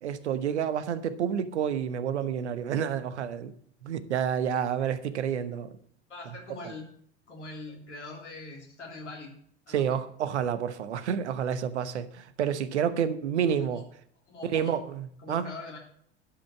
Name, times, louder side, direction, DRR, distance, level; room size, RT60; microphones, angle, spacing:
voice 1, 0.0-3.5 3.8-5.7 6.6-6.7 9.7-13.8 14.5-15.4, right 8 dB, 75° right, 12 dB, 1.0 m, -29 dB
voice 2, 6.1-6.9 7.3-9.3 9.7-10.0 13.5-13.8 14.3-14.7 15.2-15.8, left 2 dB, 80° left, 0 dB, 3.4 m, -42 dB
11.5 x 5.2 x 7.2 m, 0.63 s
figure-of-eight pair, 75°, 35 cm